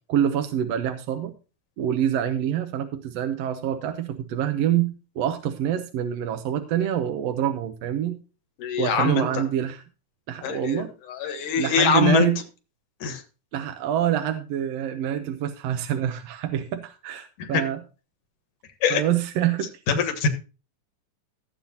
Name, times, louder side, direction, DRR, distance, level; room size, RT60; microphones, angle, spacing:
voice 1, 0.1-1.3 1.8-8.2 8.8-9.8 10.3-10.9 11.6-12.4 13.5-17.8 18.9-19.7, right 10 dB, 70° right, 7 dB, 1.7 m, -26 dB
voice 2, 8.6-9.4 10.4-12.3 13.0-13.2 17.4-17.6 18.8-19.0 19.9-20.3, left 6 dB, 80° left, 7 dB, 2.9 m, -23 dB
16.0 x 8.0 x 2.8 m, 0.33 s
omnidirectional pair, 3.5 m